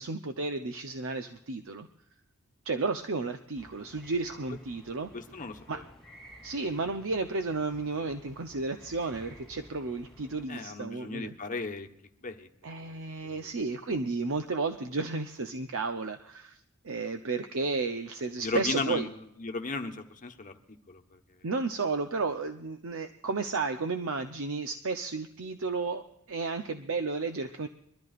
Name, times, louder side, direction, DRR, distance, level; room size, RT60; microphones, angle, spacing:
voice 1, 0.0-1.9 2.6-5.1 5.7-5.8 6.4-11.3 12.6-16.6 16.8-19.1 21.4-27.7, right 3 dB, 65° right, 7 dB, 0.8 m, -33 dB
sound 1, 3.6-10.4, equal, ahead, 3.1 m, -53 dB
voice 2, 5.1-5.8 10.5-11.9 12.2-12.5 12.9-13.0 13.2-13.5 18.4-19.1 19.4-20.5 20.9-21.0, left 3 dB, 35° left, 5 dB, 1.2 m, -35 dB
23.5 x 13.5 x 2.5 m, 0.78 s
head